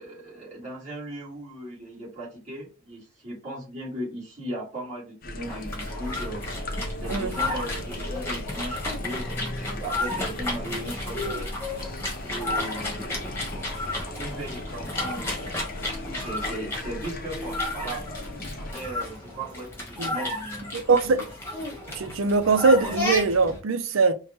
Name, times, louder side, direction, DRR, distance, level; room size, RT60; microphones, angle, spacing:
voice 1, 0.0-6.4 7.0-11.5 12.2-15.6 16.0-18.1 18.6-21.0, right 1 dB, 35° right, 1.9 m, -37 dB
sound 1, 5.2-18.7, left 1 dB, 45° left, 0.5 m, -36 dB
sound 2, 5.4-23.6, left 2 dB, 10° left, 1.1 m, -33 dB
voice 2, 20.7-21.2 21.9-24.1, right 4 dB, 80° right, 0.5 m, -22 dB
4.6 x 2.2 x 3.0 m
head